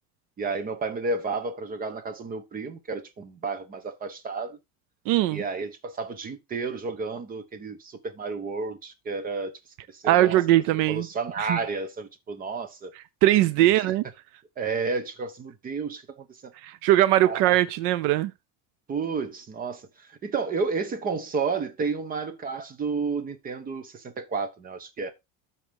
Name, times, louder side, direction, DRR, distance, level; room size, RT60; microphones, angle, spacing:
voice 1, 0.4-4.6 5.3-9.5 9.9-10.4 10.9-12.9 13.7-13.8 14.6-16.5 17.2-17.4 18.9-25.1, right 4 dB, 25° right, 1.1 m, -31 dB
voice 2, 5.1-5.4 10.0-11.1 11.4-11.6 13.2-14.0 16.6-18.3, right 15 dB, 70° right, 0.7 m, -21 dB
13.0 x 4.3 x 3.6 m
cardioid pair, 165°, 34 cm